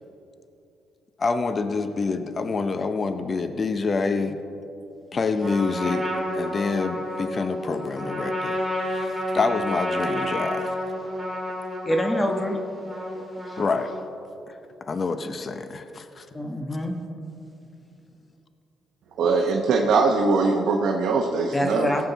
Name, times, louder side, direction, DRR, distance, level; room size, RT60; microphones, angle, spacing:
voice 1, 1.2-4.4 5.1-6.1 6.3-10.7 13.6-13.9 14.9-16.2, left 4 dB, 40° left, 9 dB, 0.7 m, -27 dB
Trumpet, 5.4-14.1, left 1 dB, 10° right, 2.8 m, -30 dB
voice 2, 11.9-12.6 13.5-13.6 16.3-16.9 21.5-22.0, equal, 20° left, 3 dB, 1.2 m, -25 dB
voice 3, 19.2-21.9, right 4 dB, 70° right, 1 dB, 0.9 m, -21 dB
17.0 x 7.6 x 4.0 m, 2.8 s
cardioid pair, 85°, 0 cm